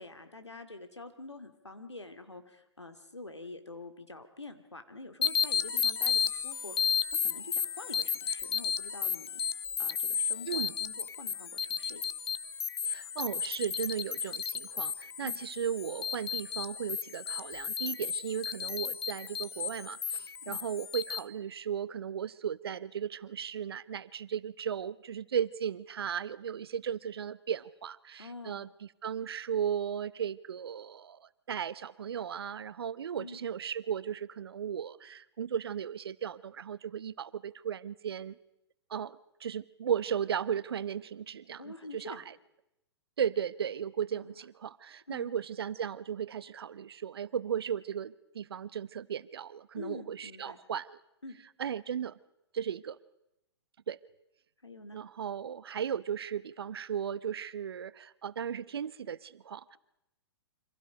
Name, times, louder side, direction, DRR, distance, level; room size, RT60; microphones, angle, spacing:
voice 1, 0.0-7.0 7.2-9.4 9.8-12.1 15.2-15.4 20.4-20.6 28.2-28.7 33.2-33.4 41.6-42.3 44.1-44.4 45.1-45.3 49.8-50.6 51.2-51.4 54.6-55.0, left 2 dB, 85° left, 6 dB, 2.6 m, -46 dB
sound 1, 5.2-21.2, left 7 dB, 65° left, 1.1 m, -33 dB
voice 2, 12.8-38.3 38.9-42.3 43.2-51.0 51.6-52.2 52.5-53.0 53.9-54.0 54.9-59.6, right 8 dB, 60° right, 18 dB, 0.9 m, -36 dB
28.5 x 25.5 x 5.2 m, 0.86 s
figure-of-eight pair, 115°, 14 cm